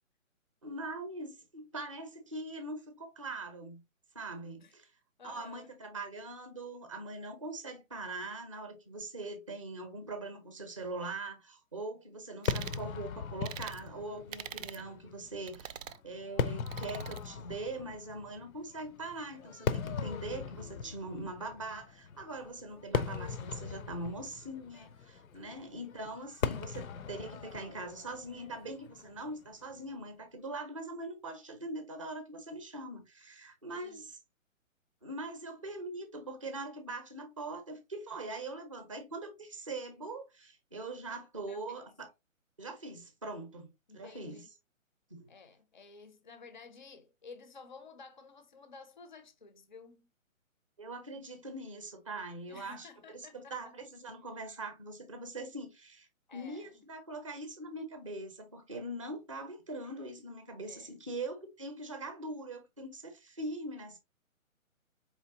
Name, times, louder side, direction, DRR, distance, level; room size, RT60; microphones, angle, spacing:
voice 1, 0.6-3.8 4.1-4.9 5.2-15.8 16.0-34.2 35.0-42.1 42.6-43.7 43.9-44.4 45.1-45.3 50.8-64.0, right 2 dB, 25° right, 0.5 m, -42 dB
voice 2, 5.2-5.7 25.5-25.9 33.7-34.1 41.5-41.9 43.9-44.5 45.3-50.1 52.5-53.8 56.3-56.8 60.7-60.9, left 4 dB, 35° left, 0.5 m, -53 dB
sound 1, 12.4-12.8 13.4-13.8 14.3-14.8 15.5-16.0 16.7-17.2, right 9 dB, 70° right, 0.5 m, -43 dB
Fireworks, 12.5-29.8, left 6 dB, 85° left, 0.6 m, -39 dB
4.4 x 3.3 x 2.7 m
hypercardioid pair, 165°, 41 cm